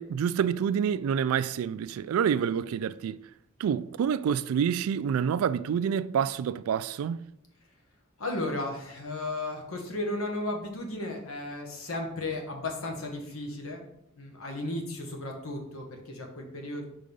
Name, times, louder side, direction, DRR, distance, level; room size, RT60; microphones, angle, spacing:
voice 1, 0.0-3.2 3.6-7.2, right 8 dB, 85° right, 0.3 m, -27 dB
voice 2, 8.2-13.8 14.2-16.8, left 2 dB, 85° left, 1.3 m, -34 dB
5.0 x 3.8 x 5.3 m
head